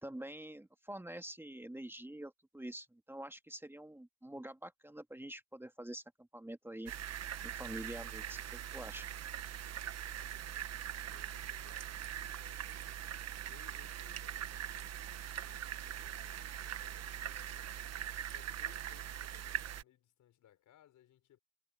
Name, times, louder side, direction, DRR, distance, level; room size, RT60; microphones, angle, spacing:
voice 1, 0.0-6.9 7.4-9.1, right 1 dB, 10° right, 1.7 m, -46 dB
sound 1, 6.9-19.8, right 10 dB, 55° right, 1.1 m, -42 dB
voice 2, 9.9-21.4, left 12 dB, 75° left, 5.4 m, -66 dB
cardioid pair, 90°, 30 cm